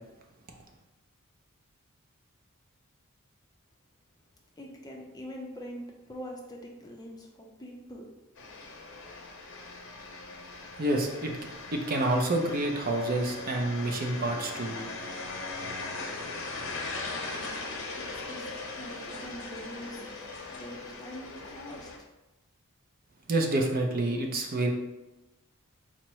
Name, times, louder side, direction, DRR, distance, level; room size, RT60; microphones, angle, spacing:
voice 1, 4.6-8.1 18.0-20.0 20.5-22.1, equal, 15° left, 0 dB, 0.5 m, -44 dB
sound 1, 8.4-22.0, left 3 dB, 60° left, 0.7 m, -39 dB
voice 2, 10.8-11.3 11.7-14.8 23.3-24.7, right 2 dB, 40° right, 2 dB, 0.5 m, -28 dB
4.2 x 2.0 x 4.5 m, 1.0 s
head